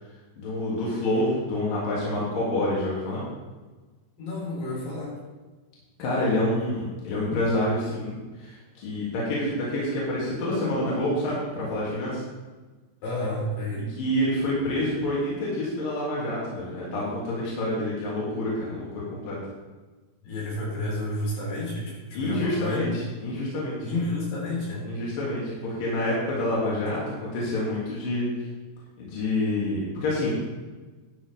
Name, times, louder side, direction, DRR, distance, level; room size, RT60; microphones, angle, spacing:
voice 1, 0.4-3.2 6.0-12.2 13.9-19.4 22.1-23.8 24.9-28.3 29.0-30.3, left 1 dB, 60° left, -6 dB, 4.1 m, -27 dB
voice 2, 4.2-5.2 13.0-13.9 20.2-22.9 23.8-24.9, left 1 dB, 85° left, -5 dB, 6.4 m, -30 dB
12.0 x 11.5 x 3.5 m, 1.3 s
omnidirectional pair, 4.8 m